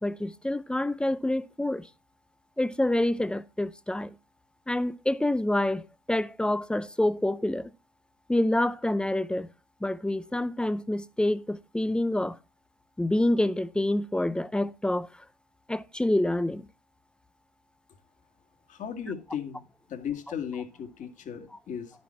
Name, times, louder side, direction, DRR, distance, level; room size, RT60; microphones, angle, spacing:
voice 1, 0.0-1.9 2.6-4.1 4.7-7.7 8.3-9.5 9.8-12.4 13.0-15.2 15.7-16.7, left 1 dB, 5° left, 0.5 m, -27 dB
voice 2, 18.7-19.6 19.9-21.9, left 8 dB, 35° left, 1.9 m, -36 dB
10.5 x 7.1 x 4.2 m
supercardioid pair, 105°, 21 cm